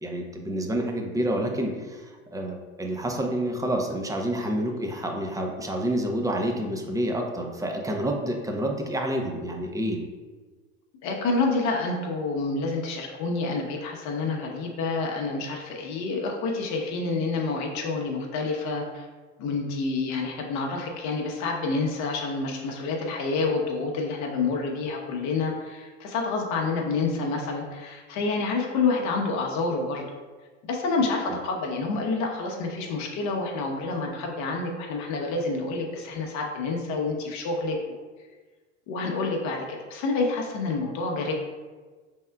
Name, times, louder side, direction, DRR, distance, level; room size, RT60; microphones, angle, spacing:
voice 1, 0.0-10.0 31.3-31.4, right 1 dB, 10° right, 2 dB, 0.6 m, -28 dB
voice 2, 11.0-19.1 19.4-30.1 30.6-38.0 38.9-41.3, left 3 dB, 55° left, 0 dB, 0.8 m, -28 dB
5.3 x 3.6 x 2.2 m, 1.4 s
hypercardioid pair, 90°, 35 cm